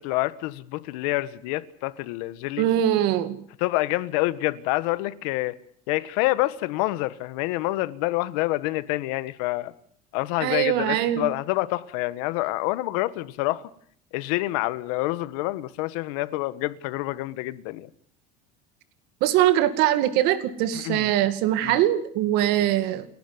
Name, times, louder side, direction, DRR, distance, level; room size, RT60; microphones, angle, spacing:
voice 1, 0.0-2.7 3.6-5.5 5.9-9.7 10.1-13.6 14.1-17.9 20.7-21.1 21.6-21.8, left 19 dB, 75° left, 1.5 m, -27 dB
voice 2, 2.6-3.4 10.4-11.3 19.2-23.1, right 12 dB, 60° right, 2.2 m, -22 dB
29.5 x 12.0 x 9.6 m
cardioid pair, 170°, 19 cm